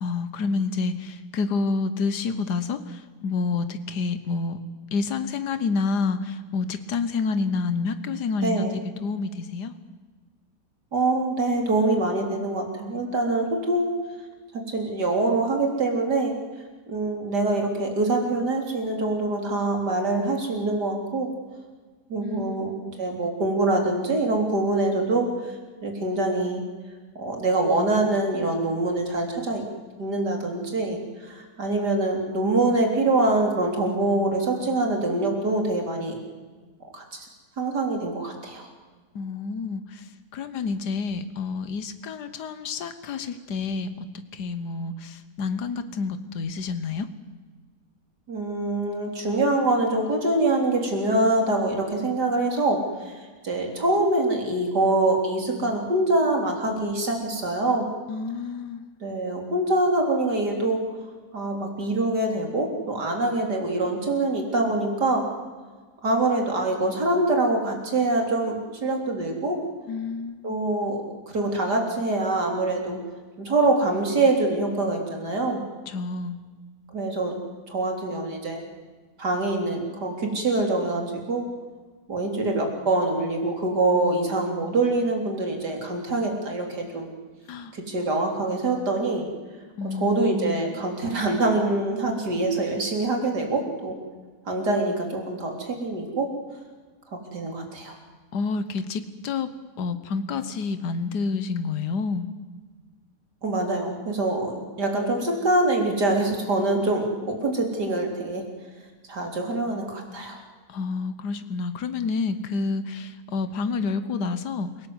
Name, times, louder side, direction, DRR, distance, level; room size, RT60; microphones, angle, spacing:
voice 1, 0.0-4.6 4.9-8.7 9.0-9.7 22.2-22.8 39.2-40.1 40.3-47.1 58.1-58.8 69.9-70.5 75.9-76.4 87.5-87.8 89.8-90.7 98.3-99.5 99.8-102.3 110.7-114.9, left 4 dB, 85° left, 11 dB, 1.7 m, -29 dB
voice 2, 8.4-8.8 10.9-13.9 14.5-16.3 16.9-21.3 22.1-25.6 25.8-26.6 27.2-29.7 30.0-36.2 36.9-37.3 37.6-38.7 48.3-57.9 59.0-60.8 61.3-65.3 66.0-69.6 70.4-71.0 71.3-73.0 73.4-75.6 76.9-77.3 77.7-78.6 79.2-81.5 82.1-87.1 87.7-89.3 89.9-94.0 94.5-96.3 97.1-98.0 103.4-108.4 109.1-110.4, right 2 dB, 85° right, 2 dB, 4.2 m, -24 dB
28.5 x 18.0 x 8.0 m, 1.4 s
omnidirectional pair, 1.7 m